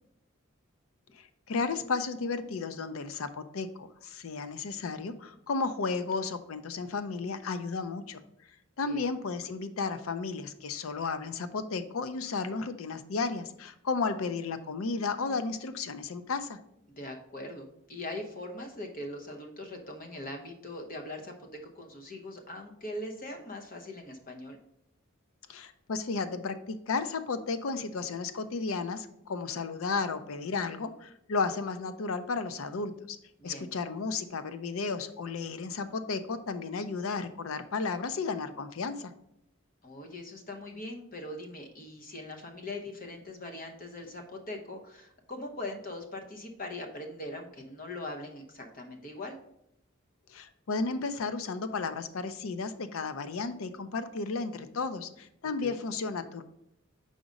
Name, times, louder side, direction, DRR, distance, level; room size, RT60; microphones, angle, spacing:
voice 1, 1.5-8.2 8.8-16.6 25.5-33.2 33.4-39.1 50.3-56.4, left 4 dB, 80° left, 11 dB, 0.5 m, -33 dB
voice 2, 17.0-21.3 21.7-24.6 33.4-33.7 39.8-49.4 55.6-55.8, left 1 dB, 40° left, 4 dB, 0.8 m, -41 dB
5.0 x 3.9 x 5.1 m, 0.78 s
head